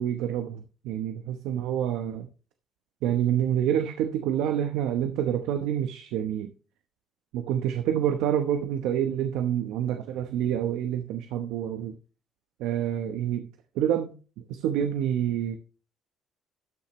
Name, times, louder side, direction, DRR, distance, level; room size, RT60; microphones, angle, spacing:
voice 1, 0.0-2.3 3.0-6.5 7.3-12.0 12.6-13.5 13.7-15.6, right 10 dB, 85° right, 0.9 m, -27 dB
13.0 x 8.7 x 3.1 m
cardioid pair, 135°, 0 cm